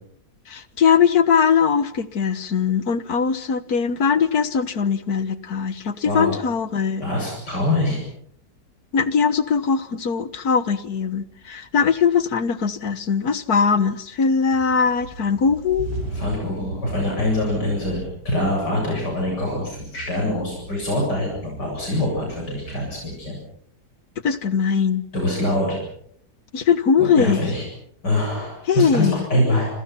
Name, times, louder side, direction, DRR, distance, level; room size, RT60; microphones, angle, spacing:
voice 1, 0.5-7.0 8.9-15.9 24.2-25.0 26.5-27.4 28.7-29.2, left 6 dB, 65° left, 14 dB, 1.9 m, -20 dB
voice 2, 6.1-6.4 7.0-8.0 16.1-23.4 25.1-25.8 27.2-27.7 28.0-29.7, left 1 dB, 85° left, -1 dB, 8.7 m, -24 dB
sound 1, 11.9-12.6 13.0-14.2 14.5-23.2, right 2 dB, 85° right, 6.5 m, -38 dB
28.5 x 27.5 x 5.9 m, 0.67 s
omnidirectional pair, 1.8 m